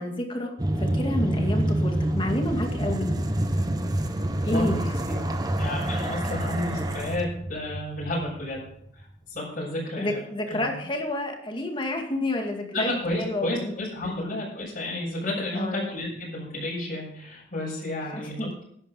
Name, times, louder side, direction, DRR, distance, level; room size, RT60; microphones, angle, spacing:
voice 1, 0.0-3.2 4.4-4.9 10.0-13.7 14.2-14.3 15.5-15.9 18.1-18.5, left 1 dB, 30° left, 3 dB, 2.2 m, -30 dB
sound 1, 0.6-8.7, right 1 dB, 20° right, 1.0 m, -27 dB
voice 2, 4.3-4.8 5.6-8.6 8.9-10.2 10.5-10.7 12.7-18.6, left 1 dB, 50° left, -7 dB, 6.0 m, -31 dB
11.5 x 9.3 x 5.5 m, 0.69 s
head